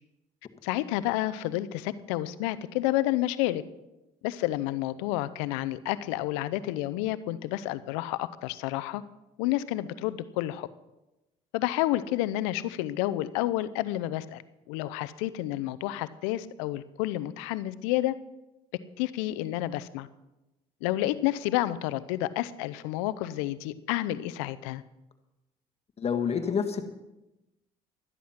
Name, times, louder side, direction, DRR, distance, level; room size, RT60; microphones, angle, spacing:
voice 1, 0.6-3.6 4.2-9.0 9.4-10.7 11.5-14.4 14.7-18.2 19.0-20.1 20.8-24.8, left 15 dB, 90° left, 16 dB, 0.6 m, -30 dB
voice 2, 26.0-26.8, left 7 dB, 40° left, 7 dB, 1.7 m, -28 dB
12.0 x 11.5 x 5.8 m, 0.98 s
supercardioid pair, 70°, 16 cm